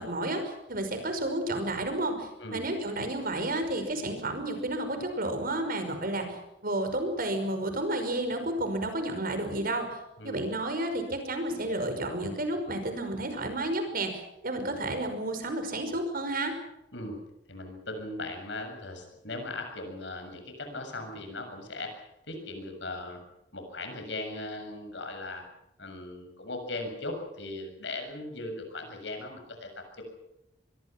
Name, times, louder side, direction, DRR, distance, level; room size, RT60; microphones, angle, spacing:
voice 1, 0.0-10.0 10.2-16.5, right 1 dB, 50° right, 7 dB, 5.5 m, -31 dB
voice 2, 10.2-10.7 16.9-17.2 17.5-23.2 23.5-25.4 25.8-30.0, left 2 dB, 70° left, 4 dB, 7.2 m, -38 dB
26.0 x 22.0 x 6.0 m, 0.88 s
head